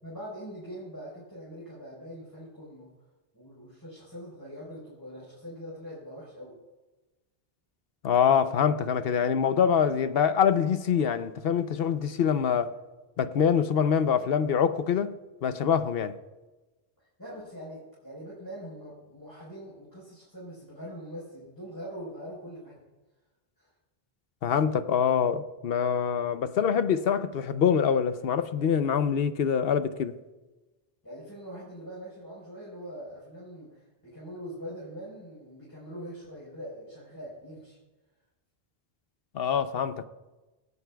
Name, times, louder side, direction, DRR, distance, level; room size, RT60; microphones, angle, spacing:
voice 1, 0.0-2.9 3.3-6.6 17.0-22.8 23.6-23.7 31.0-37.8, equal, 20° left, 4.2 m, -43 dB
voice 2, 8.0-12.7 13.2-15.1 15.4-16.1 24.4-30.2 39.3-40.1, left 7 dB, 70° left, 0.9 m, -25 dB
24.0 x 11.0 x 2.3 m
omnidirectional pair, 1.0 m